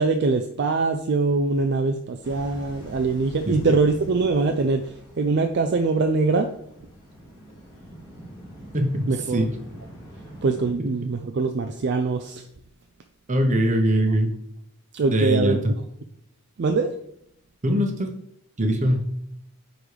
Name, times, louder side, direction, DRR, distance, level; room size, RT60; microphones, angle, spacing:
voice 1, 0.0-6.5 9.1-9.5 10.4-12.4 14.9-15.6 16.6-16.9, right 3 dB, 50° right, 6 dB, 0.4 m, -23 dB
sound 1, 2.2-10.7, equal, 20° left, 2.0 m, -44 dB
voice 2, 13.3-14.3 15.0-15.7 17.6-18.1 18.6-19.1, equal, 35° right, 4 dB, 0.9 m, -22 dB
9.4 x 3.9 x 3.3 m, 0.72 s
head